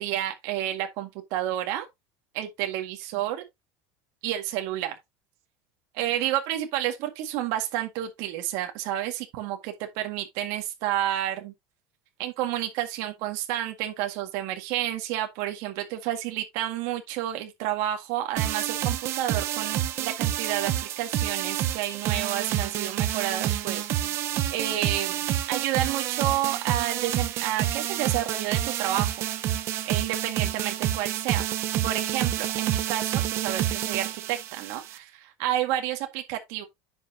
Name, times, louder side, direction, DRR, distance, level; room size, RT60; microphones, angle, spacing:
voice 1, 0.0-1.9 2.3-3.4 4.2-5.0 5.9-11.5 12.2-24.2 24.5-29.2 29.9-31.5 31.8-36.7, right 12 dB, 55° right, 1.8 m, -30 dB
sound 1, 18.4-35.0, right 12 dB, 40° right, 1.0 m, -28 dB
9.8 x 5.7 x 2.8 m
supercardioid pair, 155°, 7 cm